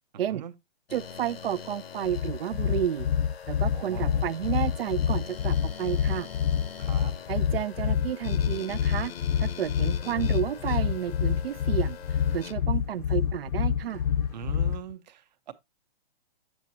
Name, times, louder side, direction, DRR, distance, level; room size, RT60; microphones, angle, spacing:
voice 1, 0.1-0.5 3.7-4.4 6.8-7.1 10.0-10.4 14.3-15.5, right 9 dB, 45° right, 0.9 m, -42 dB
sound 1, 0.9-12.5, left 7 dB, 90° left, 1.0 m, -43 dB
voice 2, 0.9-3.1 3.5-6.3 7.3-9.1 9.4-12.0 12.3-14.0, right 10 dB, 75° right, 0.7 m, -31 dB
sound 2, 2.0-14.9, left 8 dB, 65° left, 0.4 m, -27 dB
sound 3, 9.7-14.8, left 2 dB, 10° left, 0.6 m, -52 dB
7.5 x 7.3 x 2.7 m
hypercardioid pair, 160°, 29 cm